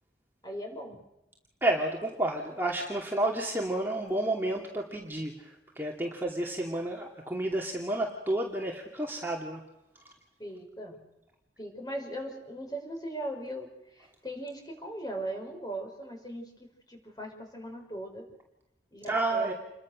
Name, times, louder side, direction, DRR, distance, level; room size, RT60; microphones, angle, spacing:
voice 1, 0.4-1.0 10.4-11.0 11.6-18.2 18.9-19.5, right 1 dB, 25° left, 3 dB, 5.3 m, -39 dB
voice 2, 1.6-5.3 5.8-9.6 10.0-10.1 19.1-19.5, right 1 dB, 10° right, -1 dB, 2.5 m, -30 dB
28.5 x 23.0 x 6.4 m, 0.91 s
head